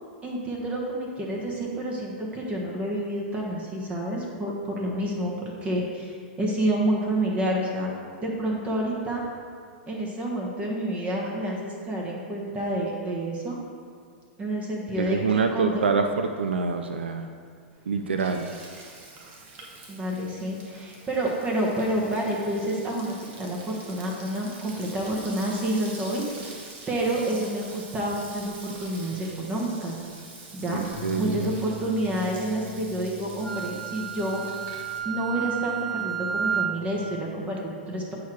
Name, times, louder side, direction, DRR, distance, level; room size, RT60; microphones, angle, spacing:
voice 1, 0.2-7.9 8.2-9.2 9.9-13.6 14.4-15.8 19.9-30.0 30.5-30.8 31.2-34.4 35.0-38.1, right 1 dB, 20° right, -2 dB, 1.3 m, -29 dB
voice 2, 15.0-17.3 17.9-18.6 30.7-31.5, right 4 dB, 90° right, 6 dB, 0.4 m, -26 dB
Frying (food), 17.7-35.0, right 3 dB, 40° right, 1.4 m, -45 dB
sound 1, 30.9-37.2, equal, 80° left, 1.6 m, -45 dB
Wind instrument woodwind instrument, 33.4-36.8, right 8 dB, ahead, 0.5 m, -31 dB
8.1 x 4.8 x 4.6 m, 2.2 s
hypercardioid pair, 115°, 6 cm